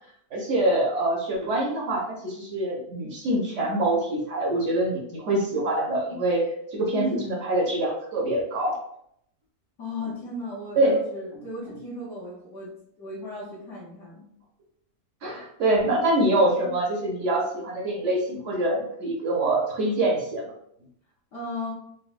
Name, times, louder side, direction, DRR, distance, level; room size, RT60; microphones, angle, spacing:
voice 1, 0.3-8.8 10.8-11.0 15.2-20.4, right 1 dB, 65° right, -2 dB, 0.8 m, -25 dB
voice 2, 6.9-7.4 9.8-14.3 21.3-21.7, left 1 dB, 60° left, -7 dB, 1.0 m, -35 dB
3.9 x 2.1 x 2.4 m, 0.72 s
omnidirectional pair, 1.6 m